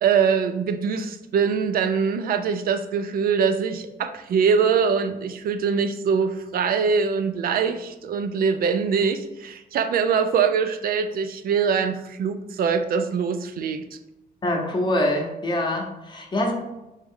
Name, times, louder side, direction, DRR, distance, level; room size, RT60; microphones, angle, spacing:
voice 1, 0.0-13.8, right 6 dB, 65° right, 9 dB, 0.4 m, -23 dB
voice 2, 14.4-16.5, left 1 dB, 30° left, 1 dB, 0.8 m, -24 dB
3.5 x 3.1 x 3.6 m, 0.96 s
wide cardioid pair, 145°, 16 cm